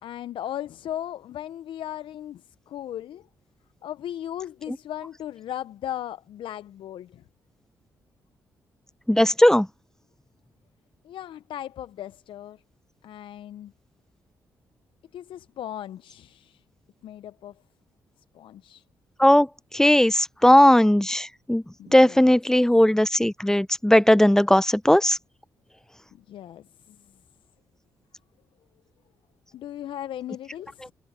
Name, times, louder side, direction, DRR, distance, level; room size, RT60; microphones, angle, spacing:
voice 1, 0.0-3.3 3.8-7.2 11.0-12.6 13.0-13.7 15.1-16.6 17.0-17.6 18.3-18.8 21.8-22.3 26.1-27.0 29.5-30.9, left 11 dB, 70° left, 0.8 m, -37 dB
voice 2, 9.1-9.7 19.2-19.5 19.7-21.6 21.9-25.2, left 1 dB, 5° left, 0.9 m, -18 dB
hypercardioid pair, 40°, 9 cm